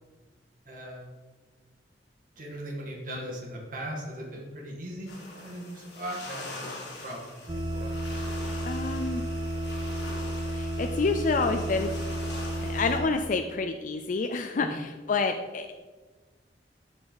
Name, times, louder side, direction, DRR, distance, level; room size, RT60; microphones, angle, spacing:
voice 1, 0.7-1.2 2.4-7.4 7.7-8.0 14.6-14.8, right 1 dB, 50° right, -2 dB, 2.1 m, -39 dB
sound 1, 5.1-13.0, left 2 dB, 70° left, 2.2 m, -43 dB
sound 2, 7.5-13.1, right 1 dB, 25° right, 0.6 m, -32 dB
voice 2, 8.6-9.2 10.5-11.9 12.6-15.7, left 4 dB, 45° left, 6 dB, 0.4 m, -28 dB
13.0 x 4.9 x 4.0 m, 1.4 s
head